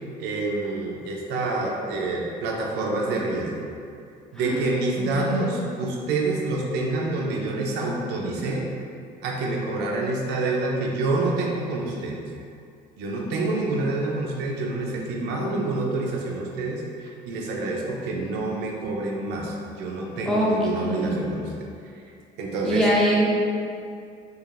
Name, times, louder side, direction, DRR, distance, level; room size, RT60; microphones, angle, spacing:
voice 1, 0.2-3.7 4.3-8.7 9.2-12.2 13.0-21.5 22.4-22.9, right 2 dB, 85° right, -1 dB, 0.6 m, -27 dB
voice 2, 5.0-5.5 20.3-21.2 22.6-23.3, equal, 5° left, -6 dB, 0.7 m, -23 dB
4.7 x 2.5 x 2.5 m, 2.4 s
cardioid pair, 110°, 17 cm